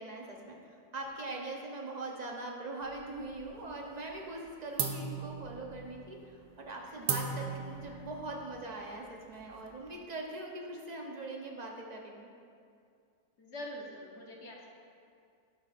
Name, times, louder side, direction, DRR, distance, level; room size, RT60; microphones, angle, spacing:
voice 1, 0.0-12.3, right 2 dB, 40° right, 0 dB, 0.6 m, -42 dB
sound 1, 2.8-3.7 4.0-4.4 4.8-9.9, right 6 dB, 75° right, 1.2 m, -38 dB
voice 2, 13.4-14.7, left 1 dB, 50° left, -1 dB, 1.0 m, -45 dB
11.5 x 7.9 x 2.5 m, 2.4 s
omnidirectional pair, 1.7 m